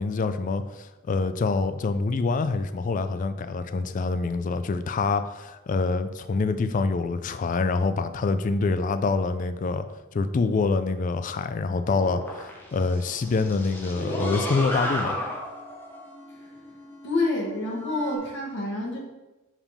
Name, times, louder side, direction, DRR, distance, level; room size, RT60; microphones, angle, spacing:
voice 1, 0.0-9.9 10.1-15.2, left 4 dB, 35° left, 11 dB, 0.3 m, -26 dB
sound 1, 12.0-18.2, equal, 10° left, 0.8 m, -34 dB
voice 2, 17.0-19.0, left 2 dB, 55° left, -2 dB, 1.2 m, -28 dB
4.9 x 3.5 x 5.4 m, 1.1 s
head